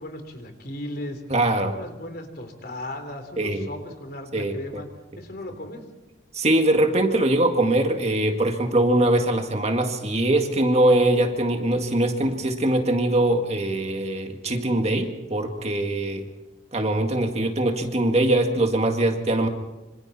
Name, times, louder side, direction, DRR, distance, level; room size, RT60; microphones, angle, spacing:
voice 1, 0.0-1.2 1.6-4.9 5.2-5.8, left 1 dB, 55° left, 6 dB, 3.4 m, -36 dB
voice 2, 1.3-1.8 3.4-3.7 4.3-4.8 6.3-16.3 16.7-19.5, right 1 dB, 35° right, 4 dB, 1.9 m, -22 dB
26.5 x 26.0 x 4.2 m, 1.1 s
head